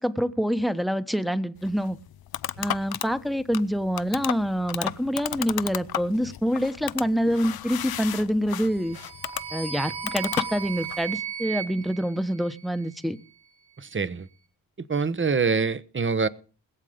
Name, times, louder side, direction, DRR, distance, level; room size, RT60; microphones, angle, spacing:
voice 1, 0.0-2.0 2.6-9.0 9.5-13.2, equal, ahead, 1.1 m, -26 dB
sound 1, 1.6-11.1, left 11 dB, 60° left, 0.7 m, -34 dB
sound 2, 8.7-13.0, right 7 dB, 65° right, 2.5 m, -36 dB
voice 2, 13.8-14.3 14.8-16.3, right 5 dB, 30° right, 1.0 m, -25 dB
21.0 x 7.5 x 5.1 m
cardioid pair, 50°, 42 cm